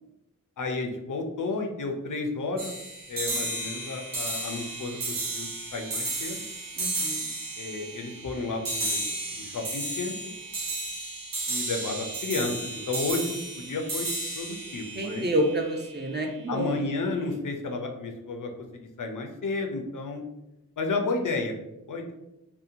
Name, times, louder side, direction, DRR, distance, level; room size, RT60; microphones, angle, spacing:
voice 1, 0.6-2.7 3.1-6.4 7.6-9.1 9.4-10.3 11.5-14.1 14.4-15.3 16.5-20.2 20.8-21.5 21.9-22.1, left 3 dB, 65° left, 3 dB, 0.5 m, -32 dB
sound 1, 2.6-16.0, right 2 dB, 75° right, 0.7 m, -33 dB
voice 2, 6.8-7.3 14.9-16.8, right 1 dB, 30° right, 1 dB, 0.4 m, -28 dB
2.7 x 2.1 x 2.5 m, 0.91 s
wide cardioid pair, 45°, 34 cm